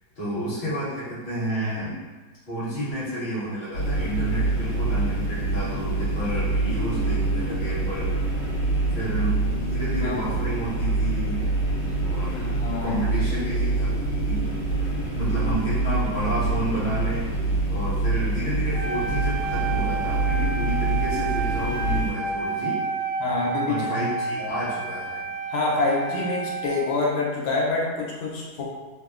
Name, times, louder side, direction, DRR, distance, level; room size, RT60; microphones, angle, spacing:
voice 1, 0.2-2.0 2.5-8.1 8.9-11.5 12.0-12.5 12.8-14.5 15.1-17.3 17.6-22.8 23.6-25.3, right 1 dB, 30° left, -11 dB, 0.9 m, -31 dB
sound 1, 3.7-22.1, right 2 dB, 60° left, 1.3 m, -25 dB
voice 2, 12.3-13.0 23.2-24.1 24.4-24.5 25.5-28.6, left 3 dB, 85° left, -3 dB, 1.4 m, -26 dB
Wind instrument woodwind instrument, 18.7-27.0, right 4 dB, 85° right, 1.4 m, -30 dB
3.4 x 2.1 x 2.3 m, 1.3 s
omnidirectional pair, 2.2 m